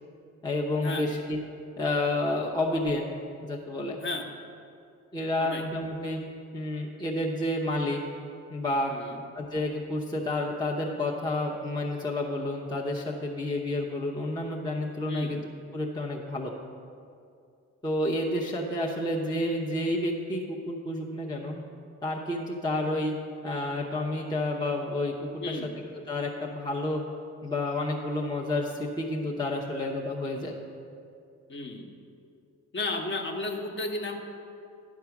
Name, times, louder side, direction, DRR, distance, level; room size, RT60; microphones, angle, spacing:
voice 1, 0.4-1.4 1.8-3.1 3.4-4.0 5.1-6.2 6.5-8.0 8.5-8.9 9.3-15.4 15.7-16.5 17.8-21.6 22.0-23.1 23.4-25.1 25.4-27.0 27.4-30.6, left 1 dB, 15° left, -2 dB, 0.7 m, -30 dB
voice 2, 8.9-9.2 15.1-15.3 25.4-25.7 31.5-31.9 32.7-34.2, left 2 dB, 40° left, 2 dB, 1.1 m, -33 dB
10.5 x 4.7 x 5.9 m, 2.5 s
cardioid pair, 90°, 30 cm